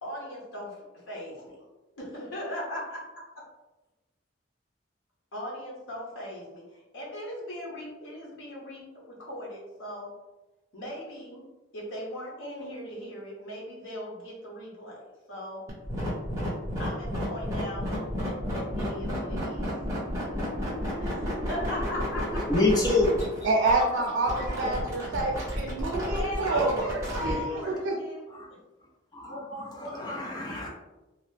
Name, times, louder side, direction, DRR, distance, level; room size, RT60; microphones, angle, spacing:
voice 1, 0.0-1.6 2.0-3.0 5.3-10.1 10.7-11.4 11.7-15.6 16.8-17.9 18.2-19.7 21.0-22.5 25.9-28.2 29.3-30.7, left 1 dB, 85° left, -3 dB, 0.9 m, -38 dB
sound 1, 15.7-27.3, equal, 15° right, 0.7 m, -32 dB
voice 2, 22.5-23.1 29.1-29.4 29.9-30.7, left 3 dB, 20° left, -1 dB, 0.4 m, -25 dB
voice 3, 23.4-27.4 27.7-28.0, right 3 dB, 75° right, 0 dB, 0.4 m, -27 dB
2.8 x 2.1 x 3.2 m, 1.0 s
head